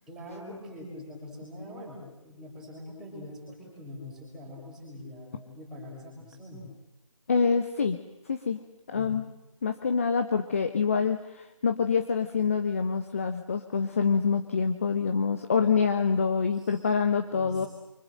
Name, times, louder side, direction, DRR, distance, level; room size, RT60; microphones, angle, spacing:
voice 1, 0.1-6.7 8.9-9.2 16.6-16.8 17.3-17.7, left 1 dB, 5° right, -4 dB, 5.4 m, -43 dB
voice 2, 7.3-8.0 8.3-8.6 8.9-9.2 9.6-17.7, left 5 dB, 25° left, 7 dB, 1.0 m, -26 dB
28.5 x 24.5 x 7.7 m, 0.91 s
figure-of-eight pair, 160°, 18 cm